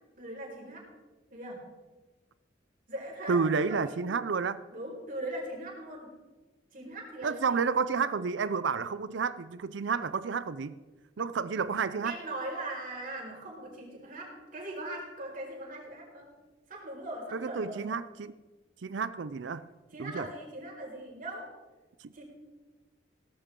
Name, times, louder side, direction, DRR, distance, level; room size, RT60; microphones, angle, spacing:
voice 1, 0.2-0.9 1.3-1.6 2.9-4.1 4.7-6.1 6.7-7.6 12.0-16.3 16.7-17.8 19.9-21.5 22.1-22.2, right 1 dB, 45° right, -1 dB, 4.8 m, -40 dB
voice 2, 3.3-4.6 7.2-10.7 11.2-12.2 17.3-18.3 18.8-19.7 20.0-20.3 22.0-22.1, right 5 dB, 75° right, 15 dB, 0.5 m, -30 dB
17.5 x 14.0 x 3.8 m, 1.2 s
head